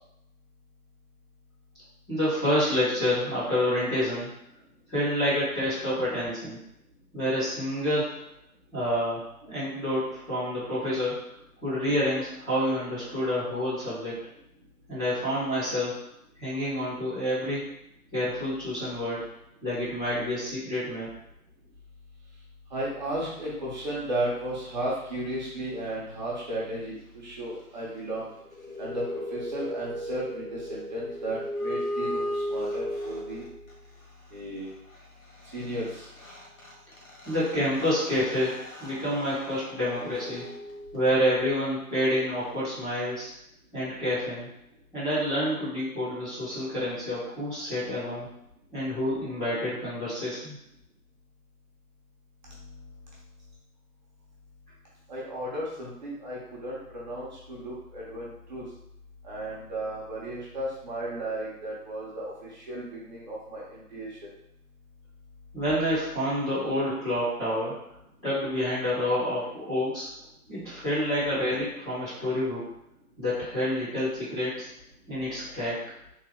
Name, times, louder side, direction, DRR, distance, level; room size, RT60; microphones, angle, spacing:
voice 1, 2.1-4.3 4.9-6.6 7.1-8.2 8.7-11.2 11.6-14.2 14.9-16.0 16.4-17.6 18.1-19.2 19.6-21.1 37.2-40.4 40.9-43.3 43.7-44.5 44.9-48.3 48.7-50.5 65.5-67.8 68.2-70.1 70.5-72.6 73.2-74.7 75.1-75.8, equal, 5° left, -16 dB, 0.8 m, -28 dB
voice 2, 22.7-28.3 28.8-29.0 29.3-33.4 34.3-34.7 35.5-36.1 52.5-52.8 55.1-58.6 59.2-64.2, right 1 dB, 30° right, -6 dB, 1.0 m, -34 dB
sound 1, 28.3-33.7 35.6-35.7 35.9-41.4, equal, 60° left, 1.3 m, -36 dB
3.6 x 2.7 x 3.4 m, 0.80 s
figure-of-eight pair, 140°, 46 cm